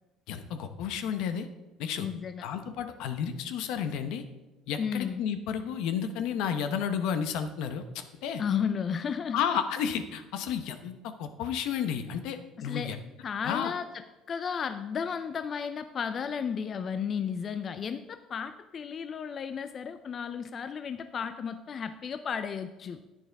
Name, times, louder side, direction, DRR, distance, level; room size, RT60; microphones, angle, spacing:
voice 1, 0.3-1.5 1.8-2.1 2.4-4.2 4.7-8.4 9.3-13.0 13.4-13.7, left 8 dB, 75° left, 9 dB, 1.0 m, -32 dB
voice 2, 2.0-2.4 4.8-5.2 8.4-9.4 12.6-12.9 13.2-13.8 14.3-23.0, left 7 dB, 35° left, 10 dB, 0.4 m, -33 dB
10.5 x 9.5 x 3.5 m, 1.1 s
cardioid pair, 135°, 0 cm